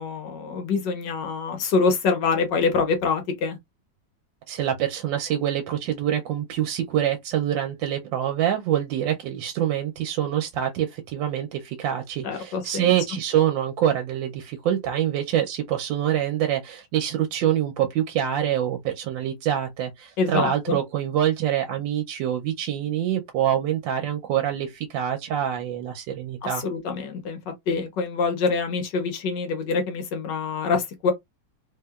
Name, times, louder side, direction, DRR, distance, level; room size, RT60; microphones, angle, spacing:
voice 1, 0.0-3.6 12.2-12.9 20.2-20.8 26.6-27.4 27.7-31.1, left 4 dB, 80° left, 1.4 m, -25 dB
voice 2, 4.5-26.6, right 10 dB, 90° right, 1.3 m, -25 dB
3.1 x 2.8 x 2.3 m
omnidirectional pair, 1.9 m